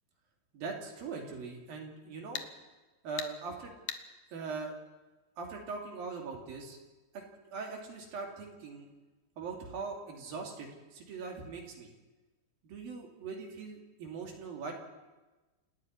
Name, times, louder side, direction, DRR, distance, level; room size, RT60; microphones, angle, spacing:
voice 1, 0.5-2.4 3.0-3.7 4.3-4.7 5.4-6.8 7.1-7.2 7.5-8.9 9.4-11.9 12.6-14.7, right 4 dB, 60° right, 1 dB, 4.2 m, -41 dB
sound 1, 1.1-1.2 2.3-2.5 3.2-3.3 3.9-4.0, left 9 dB, 70° left, 1.8 m, -38 dB
28.0 x 12.0 x 9.7 m, 1.2 s
omnidirectional pair, 4.9 m